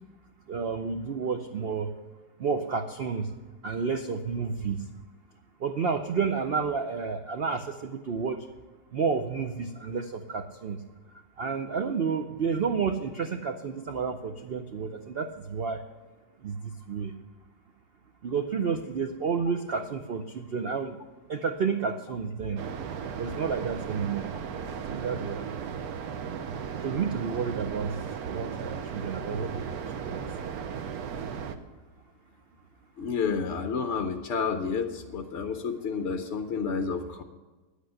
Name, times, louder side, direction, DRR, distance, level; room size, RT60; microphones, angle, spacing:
voice 1, 0.5-1.9 2.4-3.3 3.6-4.8 5.6-8.5 8.9-10.8 11.4-15.8 16.4-17.1 18.2-21.0 21.3-22.6 23.2-24.3 24.9-25.5 26.8-27.9 28.2-30.2, right 5 dB, 85° right, 7 dB, 0.5 m, -30 dB
sound 1, 22.6-31.6, right 7 dB, 65° right, 1.2 m, -36 dB
voice 2, 33.0-37.2, left 5 dB, 60° left, 6 dB, 0.7 m, -30 dB
10.0 x 8.2 x 7.6 m, 1.3 s
omnidirectional pair, 1.8 m